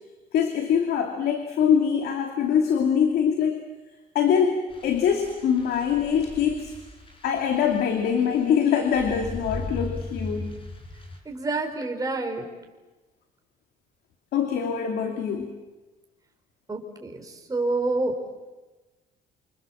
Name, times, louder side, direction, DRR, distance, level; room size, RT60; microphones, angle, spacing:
voice 1, 0.3-3.6 4.1-6.7 7.2-10.5 14.3-15.5, left 7 dB, 70° left, 4 dB, 2.8 m, -23 dB
sound 1, 4.7-11.2, left 2 dB, 30° left, 5.7 m, -38 dB
voice 2, 11.2-12.5 16.7-17.2 17.5-18.1, right 2 dB, 20° right, 3 dB, 5.1 m, -27 dB
28.0 x 26.5 x 7.5 m, 1.2 s
cardioid pair, 110°, 17 cm